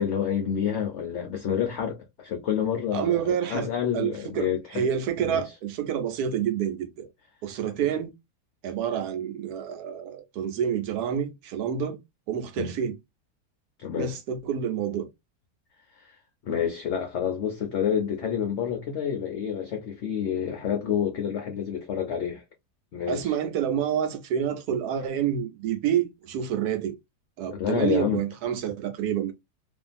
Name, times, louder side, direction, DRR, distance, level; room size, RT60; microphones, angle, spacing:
voice 1, 0.0-4.9 5.2-5.4 12.6-12.7 13.8-14.1 15.9-16.2 16.4-22.4 22.9-23.3 27.5-28.2, left 8 dB, 65° left, 0.7 m, -28 dB
voice 2, 2.9-3.7 3.9-7.1 7.4-8.1 8.6-12.0 12.3-13.0 14.0-15.1 23.1-26.9 27.4-29.3, right 9 dB, 75° right, 1.1 m, -28 dB
2.7 x 2.4 x 2.4 m
omnidirectional pair, 1.7 m